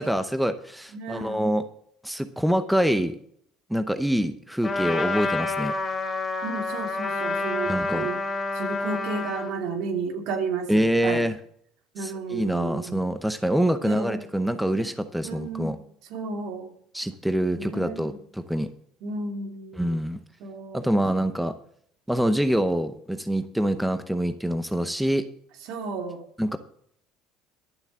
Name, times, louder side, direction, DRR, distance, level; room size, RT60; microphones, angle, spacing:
voice 1, 0.0-1.6 2.0-3.2 3.7-5.7 7.7-8.1 10.7-11.4 12.0-15.8 16.9-18.7 19.8-20.2 20.7-21.5 22.1-25.2 26.4-26.6, equal, ahead, 10 dB, 0.7 m, -25 dB
voice 2, 0.9-1.4 6.4-8.2 8.5-11.2 11.9-13.0 13.8-14.2 15.2-15.8 16.1-16.7 17.6-18.2 19.0-19.9 20.4-20.8 25.7-26.3, right 4 dB, 65° right, 5 dB, 2.5 m, -33 dB
Trumpet, 4.6-9.5, left 3 dB, 20° left, 2.9 m, -28 dB
11.5 x 7.1 x 7.3 m, 0.66 s
cardioid pair, 135°, 0 cm